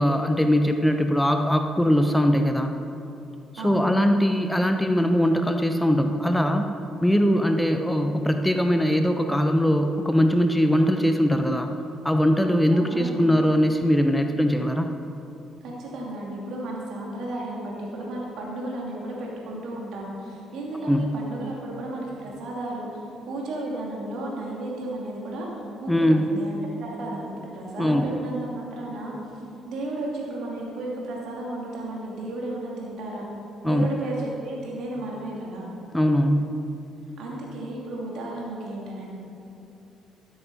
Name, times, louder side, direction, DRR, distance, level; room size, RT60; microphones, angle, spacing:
voice 1, 0.0-2.7 3.5-6.7 7.0-11.7 12.0-14.9 20.9-21.1 25.9-26.3 27.8-28.1 33.6-33.9 35.9-36.5, equal, 5° left, 5 dB, 0.7 m, -21 dB
voice 2, 3.6-3.9 12.7-13.3 15.6-22.9 23.3-25.5 25.8-29.2 29.6-33.2 33.6-35.6 37.2-39.2, right 1 dB, 60° right, -3 dB, 2.6 m, -33 dB
13.0 x 10.0 x 4.2 m, 2.7 s
figure-of-eight pair, 45°, 0 cm